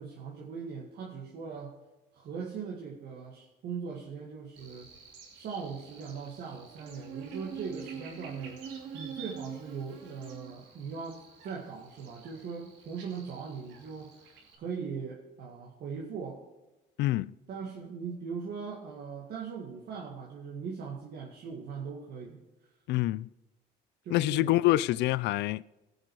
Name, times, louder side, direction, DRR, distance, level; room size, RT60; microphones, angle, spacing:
voice 1, 0.0-1.7 2.1-4.9 5.3-8.6 8.9-14.1 14.5-16.4 17.5-22.4 24.0-24.6, right 5 dB, 60° right, 2.0 m, -40 dB
Buzz, 4.6-14.6, right 6 dB, 85° right, 2.7 m, -46 dB
voice 2, 17.0-17.3 22.9-23.3 24.1-25.6, left 17 dB, 70° left, 0.4 m, -26 dB
18.0 x 6.4 x 4.8 m
supercardioid pair, 90°, 19 cm